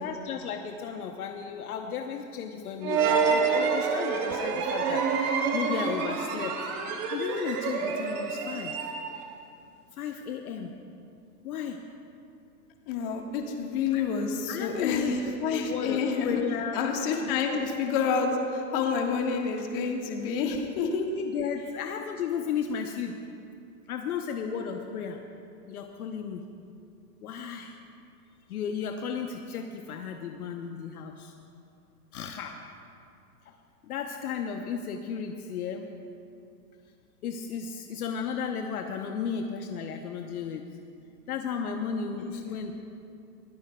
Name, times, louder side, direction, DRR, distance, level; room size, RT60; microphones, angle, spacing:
voice 1, 0.0-6.6 7.1-8.7 9.9-10.7 11.4-11.8 13.9-14.1 14.5-15.1 15.5-16.8 17.2-17.6 21.1-23.2 23.9-25.2 25.7-26.4 27.2-27.8 28.5-31.3 32.1-32.6 33.4-33.5 33.8-35.9 37.2-40.6 41.3-42.7, left 7 dB, 65° left, 4 dB, 1.0 m, -34 dB
sound 1, 2.8-9.3, right 5 dB, 20° right, 0.6 m, -28 dB
voice 2, 12.9-16.4 16.7-21.1 42.2-42.6, left 5 dB, 35° left, 2 dB, 1.5 m, -29 dB
22.0 x 15.0 x 2.3 m, 2.5 s
hypercardioid pair, 155°, 49 cm